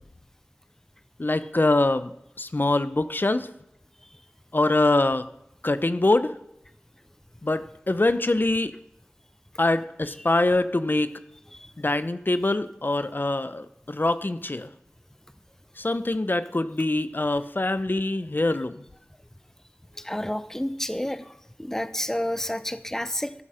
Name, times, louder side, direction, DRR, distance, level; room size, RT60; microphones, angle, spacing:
voice 1, 1.2-2.1 2.4-3.5 4.5-5.3 5.6-6.3 7.4-8.7 9.6-11.1 11.8-14.7 15.8-18.8, left 2 dB, 50° left, 13 dB, 0.8 m, -24 dB
voice 2, 20.0-21.2 21.6-23.3, left 1 dB, 10° left, 12 dB, 0.8 m, -29 dB
13.0 x 12.0 x 5.1 m, 0.82 s
wide cardioid pair, 50°, 4 cm